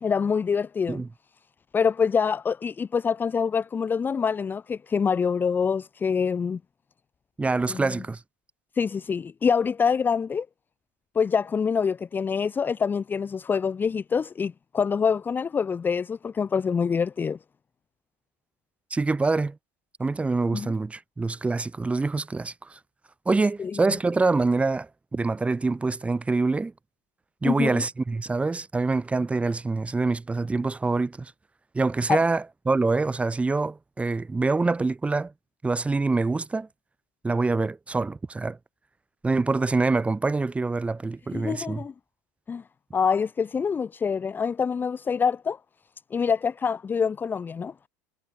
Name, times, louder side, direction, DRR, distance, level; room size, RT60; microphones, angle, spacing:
voice 1, 0.0-1.0 1.7-6.6 7.7-7.8 8.8-10.5 11.1-17.4 20.5-20.7 23.6-23.7 27.4-27.8 32.1-32.2 41.3-41.9 42.5-42.6 42.9-45.6 46.1-47.7, left 6 dB, 25° left, 0.8 m, -25 dB
voice 2, 7.4-8.2 18.9-19.6 20.0-22.8 23.3-26.7 27.4-31.3 31.7-35.3 35.6-36.7 37.2-38.6 39.2-41.8, right 3 dB, 15° right, 5.4 m, -25 dB
supercardioid pair, 95°, 8 cm